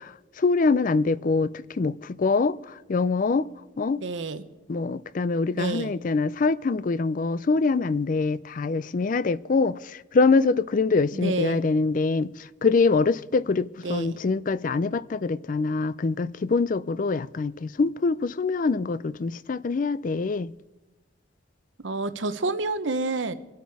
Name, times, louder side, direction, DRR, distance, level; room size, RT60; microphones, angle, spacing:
voice 1, 0.4-3.5 3.8-4.0 4.7-20.5, left 4 dB, 45° left, 0.4 m, -24 dB
voice 2, 4.0-4.4 5.5-5.9 11.1-11.6 13.8-14.2 21.8-23.3, right 3 dB, 85° right, 0.9 m, -29 dB
24.5 x 8.1 x 4.7 m
head